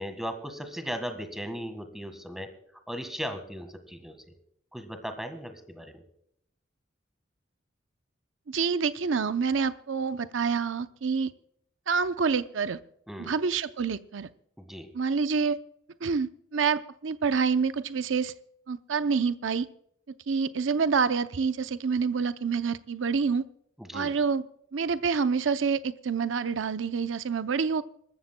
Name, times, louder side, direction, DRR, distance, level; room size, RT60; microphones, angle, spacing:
voice 1, 0.0-4.2 4.7-6.0 13.1-13.4 14.6-14.9 23.8-24.1, equal, ahead, 7 dB, 1.6 m, -37 dB
voice 2, 8.5-11.3 11.9-12.8 13.2-14.3 14.9-15.6 16.0-18.3 18.7-19.7 20.3-23.5 23.9-24.4 24.7-27.8, right 5 dB, 75° right, 12 dB, 0.6 m, -27 dB
26.5 x 13.5 x 2.2 m, 0.71 s
head